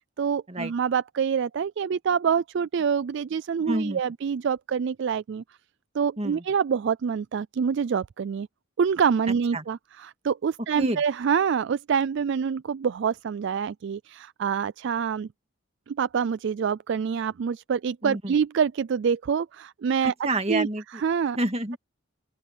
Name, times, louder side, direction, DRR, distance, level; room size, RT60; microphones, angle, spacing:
voice 1, 0.2-5.4 5.9-8.5 8.8-15.3 15.9-20.1 20.5-20.7 20.9-21.4, right 6 dB, 55° right, 0.3 m, -26 dB
voice 2, 3.7-4.0 6.2-6.4 9.5-9.6 10.8-11.0 18.0-18.3 20.0-21.0 21.4-21.8, right 1 dB, 30° right, 1.9 m, -28 dB
open air
head